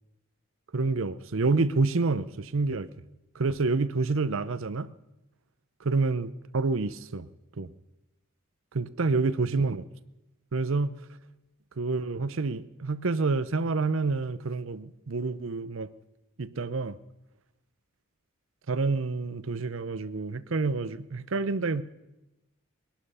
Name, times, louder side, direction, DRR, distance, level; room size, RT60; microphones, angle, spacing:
voice 1, 0.7-2.9 3.3-4.9 5.8-7.3 7.6-7.7 8.7-9.8 10.5-11.0 11.8-15.9 16.4-17.0 18.7-21.8, right 3 dB, 70° right, 0.7 m, -28 dB
21.0 x 11.5 x 5.6 m
head